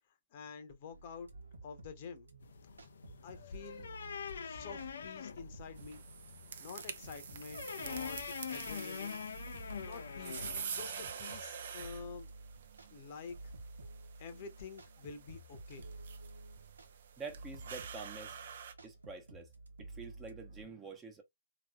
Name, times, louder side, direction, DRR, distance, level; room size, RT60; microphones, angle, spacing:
voice 1, 0.3-1.3 1.6-2.3 3.2-3.9 4.4-6.0 6.6-8.2 8.5-9.3 9.8-12.3 12.9-13.4 14.2-15.9, left 5 dB, 35° left, 1.0 m, -48 dB
sound 1, 0.9-20.7, right 2 dB, 70° right, 1.1 m, -53 dB
sound 2, 2.4-11.1, left 6 dB, 55° left, 0.5 m, -45 dB
sound 3, 5.8-18.7, right 7 dB, 50° right, 0.7 m, -47 dB
voice 2, 17.2-18.4 18.8-19.5 19.8-21.2, right 4 dB, 15° right, 0.9 m, -47 dB
3.9 x 3.0 x 2.4 m
figure-of-eight pair, 130°, 0 cm